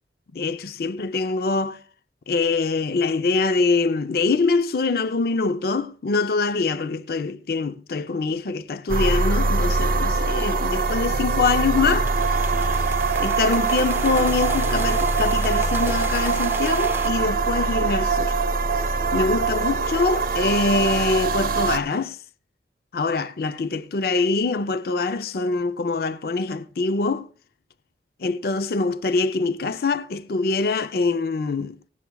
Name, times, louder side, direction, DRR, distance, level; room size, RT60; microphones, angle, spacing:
voice 1, 0.3-1.8 2.3-12.1 13.2-18.4 18.7-18.8 19.1-22.2 22.9-27.3 28.2-31.8, left 3 dB, 55° left, 0.5 m, -24 dB
sound 1, 8.9-21.8, right 4 dB, 50° right, 0.8 m, -23 dB
sound 2, 11.5-17.1, right 3 dB, 15° right, 0.6 m, -34 dB
17.0 x 17.0 x 2.3 m
head